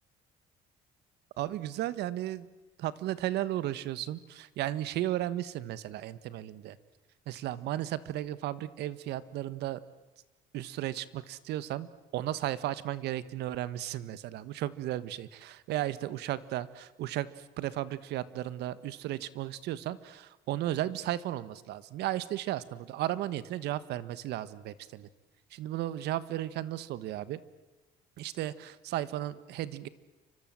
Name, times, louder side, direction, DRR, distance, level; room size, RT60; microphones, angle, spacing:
voice 1, 1.4-2.5 2.8-6.8 7.3-9.8 10.5-11.9 12.1-25.1 25.5-27.4 28.2-29.9, right 13 dB, 80° right, 15 dB, 1.4 m, -34 dB
29.5 x 25.0 x 7.7 m, 1.2 s
cardioid pair, 110°, 17 cm